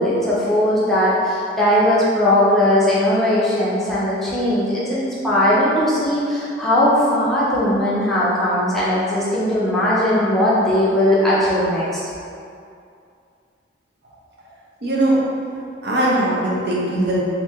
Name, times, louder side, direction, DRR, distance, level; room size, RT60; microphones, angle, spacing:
voice 1, 0.0-12.0, left 1 dB, ahead, -10 dB, 0.6 m, -18 dB
voice 2, 14.8-15.2 15.8-17.2, right 1 dB, 65° right, -6 dB, 0.7 m, -19 dB
3.0 x 2.7 x 3.5 m, 2.5 s
head